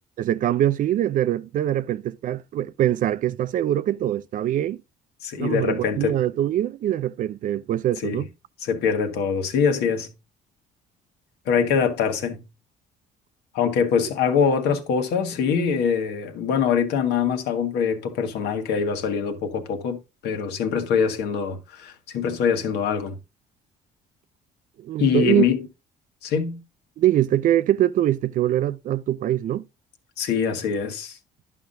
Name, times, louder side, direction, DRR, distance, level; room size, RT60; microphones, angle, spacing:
voice 1, 0.2-4.8 5.4-8.3 24.8-25.5 27.0-29.7, right 12 dB, 55° right, 0.4 m, -23 dB
voice 2, 5.2-6.2 8.0-8.3 8.6-10.1 11.4-12.4 13.5-20.0 20.2-23.2 25.0-25.6 26.2-26.6 30.2-31.2, left 6 dB, 80° left, 1.5 m, -23 dB
11.0 x 5.8 x 2.6 m
cardioid pair, 110°, 17 cm